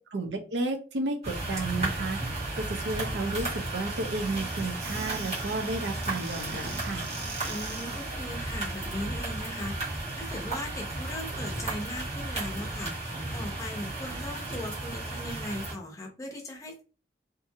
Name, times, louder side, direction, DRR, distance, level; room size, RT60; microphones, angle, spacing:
voice 1, 0.1-7.1, right 2 dB, 90° right, 5 dB, 0.6 m, -32 dB
sound 1, 1.2-15.7, right 2 dB, 40° right, 1.3 m, -34 dB
Squeak / Cupboard open or close, 3.3-8.2, right 3 dB, 65° right, 1.0 m, -43 dB
voice 2, 7.5-9.8 10.2-12.9 13.3-16.8, left 1 dB, 20° left, 1 dB, 0.6 m, -38 dB
2.6 x 2.5 x 2.7 m, 0.33 s
head